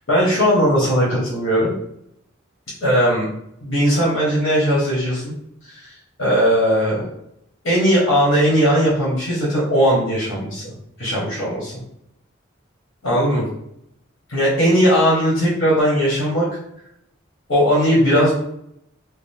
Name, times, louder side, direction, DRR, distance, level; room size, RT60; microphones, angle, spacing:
voice 1, 0.1-1.7 2.8-3.2 3.6-5.3 5.6-7.1 7.6-10.6 11.0-11.8 13.0-13.5 14.3-16.5 17.5-18.3, equal, 65° left, -6 dB, 1.4 m, -18 dB
5.0 x 2.0 x 3.5 m, 0.76 s
head